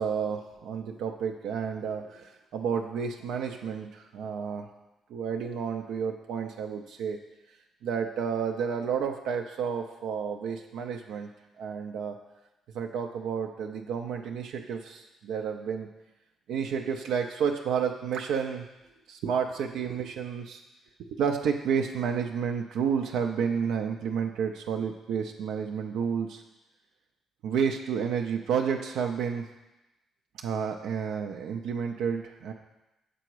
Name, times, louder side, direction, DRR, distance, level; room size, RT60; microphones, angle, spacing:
voice 1, 0.0-4.7 5.1-7.2 7.8-11.3 11.6-12.2 12.7-15.9 16.5-18.7 19.1-20.6 21.1-26.4 27.4-29.4 30.3-32.5, right 7 dB, 80° right, 3 dB, 0.5 m, -30 dB
6.9 x 3.9 x 4.6 m, 0.97 s
cardioid pair, 90°, 0 cm